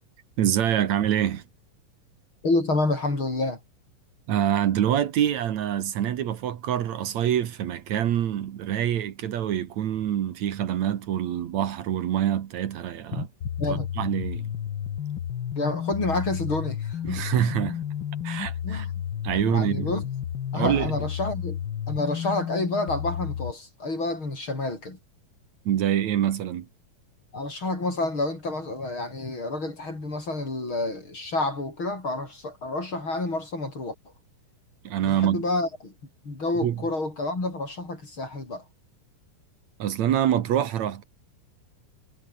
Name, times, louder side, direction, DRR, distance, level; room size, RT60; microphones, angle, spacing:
voice 1, 0.4-1.4 4.3-13.3 13.7-14.5 17.0-17.8 18.2-18.9 19.2-19.9 20.5-20.9 25.7-26.7 34.8-35.4 36.6-36.8 39.8-41.0, right 10 dB, 60° right, 2.4 m, -25 dB
voice 2, 2.4-3.6 13.2-13.3 13.6-13.9 15.6-17.2 18.6-18.9 19.5-20.0 20.5-21.6 21.9-25.0 27.3-33.9 35.0-35.9 36.3-38.6, left 2 dB, 35° left, 7.2 m, -29 dB
sound 1, 13.4-23.5, left 9 dB, 70° left, 1.1 m, -32 dB
omnidirectional pair, 4.0 m